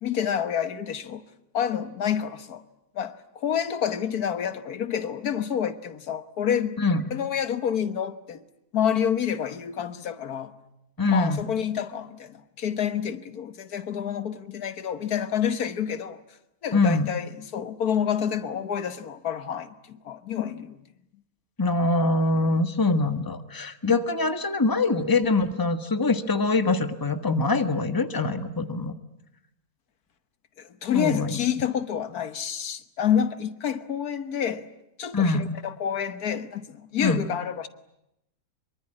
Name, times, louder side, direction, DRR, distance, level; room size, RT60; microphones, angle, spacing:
voice 1, 0.0-1.2 1.5-2.6 2.9-6.8 7.1-8.4 8.7-10.5 11.1-16.2 16.6-20.8 23.8-23.9 30.6-34.7 35.0-37.7, left 8 dB, 80° left, 1.7 m, -28 dB
voice 2, 11.0-11.4 16.7-17.1 21.6-28.9 30.9-31.4 35.1-35.6 37.0-37.3, left 3 dB, 15° left, 1.4 m, -24 dB
24.5 x 23.5 x 9.9 m
omnidirectional pair, 1.6 m